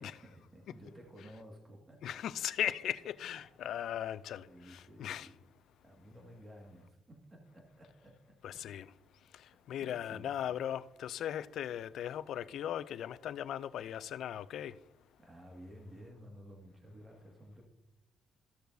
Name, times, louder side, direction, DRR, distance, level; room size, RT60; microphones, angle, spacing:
voice 1, 0.0-2.5 4.4-5.4 5.8-8.7 9.7-10.5 15.2-17.7, equal, 25° right, 1.9 m, -54 dB
voice 2, 2.0-5.3 8.4-8.9 9.7-14.7, left 10 dB, 75° left, 0.4 m, -38 dB
14.0 x 6.8 x 2.6 m
cardioid pair, 90°, 0 cm